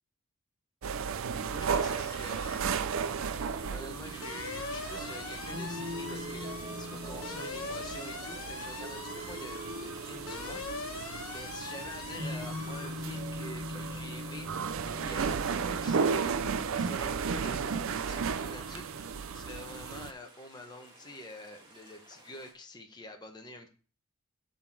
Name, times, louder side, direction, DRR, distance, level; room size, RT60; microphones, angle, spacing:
sound 1, 0.8-20.1, right 6 dB, 65° right, 0.5 m, -35 dB
voice 1, 1.4-2.7 3.0-10.6 11.3-14.5 14.9-16.5 16.7-23.7, left 1 dB, 20° left, 4 dB, 1.0 m, -47 dB
sound 2, 2.1-2.7 3.1-12.9, left 4 dB, 70° left, 1.3 m, -42 dB
sound 3, 3.2-22.5, left 1 dB, 20° right, 1.9 m, -45 dB
8.0 x 4.0 x 6.1 m, 0.39 s
head